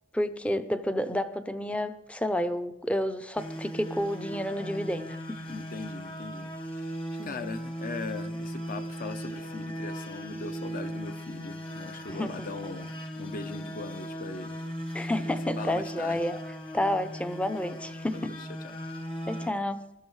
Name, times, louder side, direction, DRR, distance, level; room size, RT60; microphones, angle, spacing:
voice 1, 0.1-5.4 7.2-7.4 12.1-12.5 14.9-16.4 16.7-18.3 19.3-19.8, left 1 dB, 5° left, 11 dB, 0.6 m, -30 dB
sound 1, 3.4-19.5, equal, 30° left, 1.5 m, -38 dB
voice 2, 5.5-12.9 13.2-14.6 15.2-16.2 18.1-18.4, left 3 dB, 45° left, 10 dB, 0.7 m, -40 dB
21.0 x 13.5 x 3.2 m, 0.94 s
head